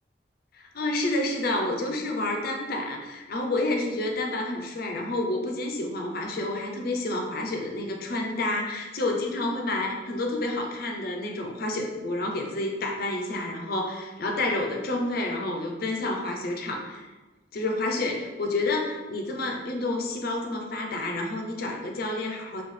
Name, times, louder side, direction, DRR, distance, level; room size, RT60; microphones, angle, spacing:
voice 1, 0.5-17.1 17.5-22.6, left 2 dB, 55° left, 2 dB, 0.5 m, -29 dB
3.2 x 2.3 x 3.6 m, 1.2 s
head